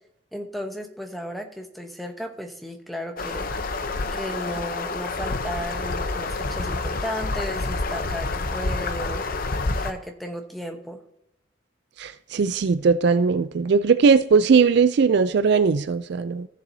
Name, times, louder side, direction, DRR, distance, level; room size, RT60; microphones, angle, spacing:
voice 1, 0.3-3.5 4.1-9.2 9.8-11.0, equal, ahead, 0.9 m, -34 dB
sound 1, 3.2-9.9, left 3 dB, 45° left, 0.7 m, -28 dB
voice 2, 12.0-16.5, right 5 dB, 55° right, 0.3 m, -19 dB
15.5 x 7.1 x 2.7 m
head